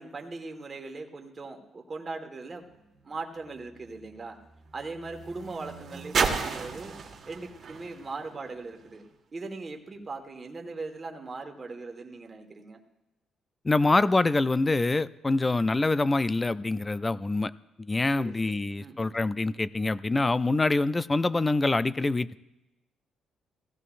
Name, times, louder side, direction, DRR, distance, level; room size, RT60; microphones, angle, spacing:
voice 1, 0.0-2.6 3.0-4.4 4.7-7.0 7.3-9.0 9.3-12.8 15.4-15.6 18.1-19.2, right 3 dB, 35° right, 3 dB, 1.4 m, -40 dB
sound 1, 2.6-9.1 9.9-10.0, right 5 dB, 55° right, 1.5 m, -35 dB
voice 2, 13.6-17.5 17.8-22.4, left 2 dB, 20° left, 16 dB, 0.4 m, -25 dB
16.0 x 15.5 x 2.5 m, 0.93 s
cardioid pair, 90°, 0 cm